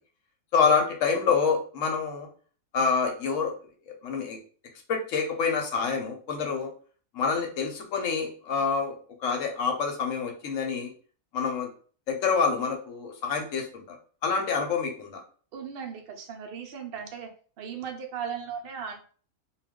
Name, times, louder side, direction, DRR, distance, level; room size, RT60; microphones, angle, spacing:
voice 1, 0.5-2.3 2.7-3.5 4.0-4.4 4.9-6.7 7.1-8.9 9.2-10.9 11.3-11.7 12.1-14.0 14.2-15.2, left 5 dB, 65° left, 2 dB, 0.9 m, -27 dB
voice 2, 15.5-17.3 17.6-19.0, right 7 dB, 75° right, 3 dB, 0.5 m, -37 dB
2.3 x 2.2 x 3.5 m, 0.42 s
omnidirectional pair, 1.6 m